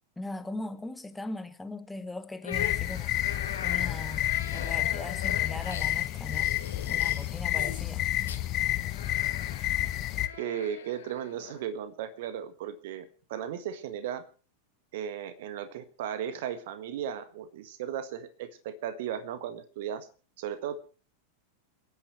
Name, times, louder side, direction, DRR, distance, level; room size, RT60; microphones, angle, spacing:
voice 1, 0.2-3.2 3.6-6.5 6.9-8.1, left 2 dB, 5° left, 1.0 m, -39 dB
sound 1, 2.4-11.6, left 8 dB, 65° left, 1.9 m, -41 dB
sound 2, 2.5-10.3, left 14 dB, 35° left, 0.9 m, -30 dB
voice 2, 10.4-14.3 14.9-20.1 20.4-20.8, right 9 dB, 55° right, 1.5 m, -36 dB
29.0 x 9.7 x 3.2 m
figure-of-eight pair, 90°, 0 cm